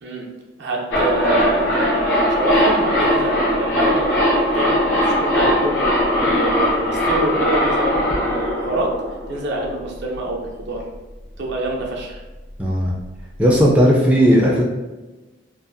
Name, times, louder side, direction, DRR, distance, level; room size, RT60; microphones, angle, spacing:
voice 1, 0.6-8.9 9.3-10.8 11.4-12.2, right 1 dB, 65° right, -1 dB, 0.5 m, -26 dB
sound 1, 0.9-9.7 10.0-10.1, equal, 70° left, 0.7 m, -19 dB
voice 2, 12.6-12.9 13.4-14.6, equal, 5° right, -4 dB, 0.3 m, -15 dB
2.6 x 2.3 x 2.5 m, 1.2 s
head